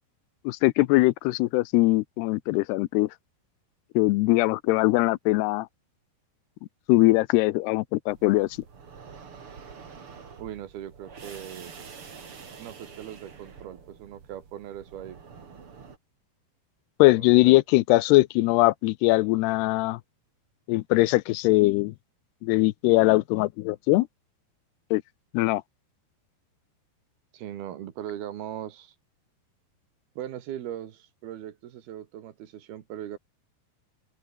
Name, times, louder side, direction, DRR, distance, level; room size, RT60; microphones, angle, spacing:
voice 1, 0.5-3.1 4.0-5.7 6.9-8.5 17.0-20.0 20.7-21.9 22.4-24.1 24.9-25.0 25.3-25.6, left 20 dB, 85° left, 2.7 m, -21 dB
sound 1, 8.1-16.0, right 5 dB, 35° right, 3.3 m, -47 dB
voice 2, 10.4-11.7 12.6-15.2 17.1-17.6 27.3-29.0 30.2-33.2, right 11 dB, 70° right, 3.5 m, -39 dB
open air
omnidirectional pair, 4.8 m